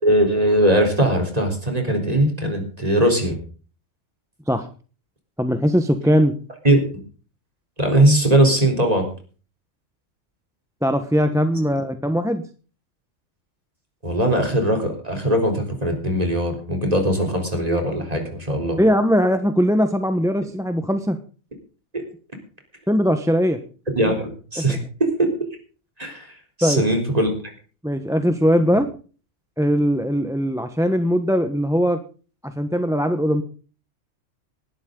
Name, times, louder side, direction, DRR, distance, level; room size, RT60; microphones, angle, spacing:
voice 1, 0.0-3.4 6.6-6.8 7.8-9.1 14.0-18.8 21.9-22.0 24.0-25.1 26.0-27.3, right 1 dB, 30° right, 3 dB, 4.0 m, -20 dB
voice 2, 5.4-6.3 10.8-12.4 18.8-21.2 22.9-23.6 24.6-24.7 26.6-26.8 27.8-28.9 29.6-32.0 32.4-33.4, equal, 5° right, 8 dB, 1.0 m, -20 dB
19.0 x 12.5 x 3.9 m, 0.38 s
omnidirectional pair, 1.4 m